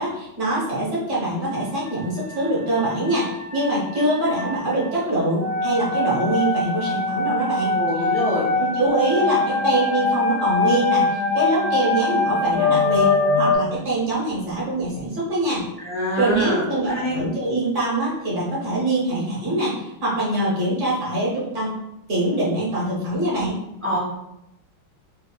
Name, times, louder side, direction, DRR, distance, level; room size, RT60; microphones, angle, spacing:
voice 1, 0.0-8.1 8.6-15.7 16.2-21.7 22.1-23.6, right 1 dB, 50° right, -6 dB, 1.0 m, -24 dB
sound 1, 1.5-13.6, left 3 dB, 65° left, 1.6 m, -23 dB
voice 2, 7.7-8.5 15.8-17.2 23.8-24.0, left 1 dB, 10° right, -9 dB, 0.5 m, -25 dB
4.7 x 2.3 x 2.2 m, 0.84 s
omnidirectional pair, 2.4 m